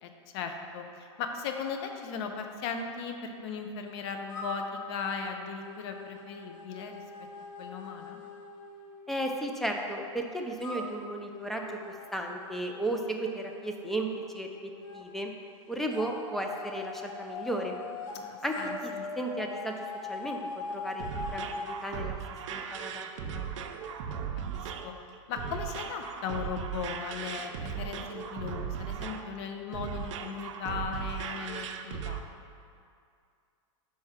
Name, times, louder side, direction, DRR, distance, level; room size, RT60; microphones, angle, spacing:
voice 1, 0.0-7.0 7.6-8.2 18.1-19.0 24.5-24.9 25.3-32.2, left 6 dB, 55° left, 5 dB, 0.7 m, -37 dB
sound 1, 4.3-9.8 10.6-15.0 15.9-18.2 18.5-21.7, left 3 dB, 85° left, 1.0 m, -42 dB
voice 2, 9.1-11.8 12.1-14.1 14.3-14.6 14.9-15.3 15.7-17.8 18.4-18.6 18.8-18.9 19.2-19.7 20.1-21.0 21.3-22.2 22.5-23.5, right 1 dB, ahead, 2 dB, 0.4 m, -34 dB
sound 2, 20.7-32.2, right 7 dB, 70° right, 0.5 m, -37 dB
4.8 x 4.4 x 5.7 m, 2.4 s
supercardioid pair, 135°, 16 cm